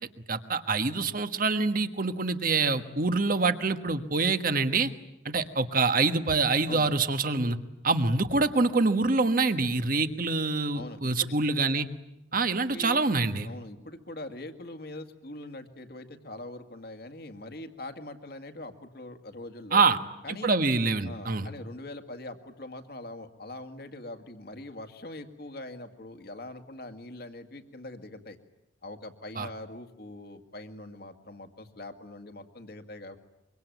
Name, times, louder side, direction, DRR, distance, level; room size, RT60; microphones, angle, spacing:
voice 1, 0.3-4.9 5.2-7.6 7.8-11.9 12.3-13.5 19.7-20.0 20.3-21.5 29.4-29.5, right 3 dB, 50° right, 9 dB, 1.4 m, -25 dB
voice 2, 10.7-11.3 12.7-13.0 13.4-19.9 20.2-20.5 21.0-28.4 28.8-33.2, left 2 dB, 55° left, 8 dB, 2.1 m, -42 dB
25.0 x 24.0 x 9.3 m, 0.90 s
head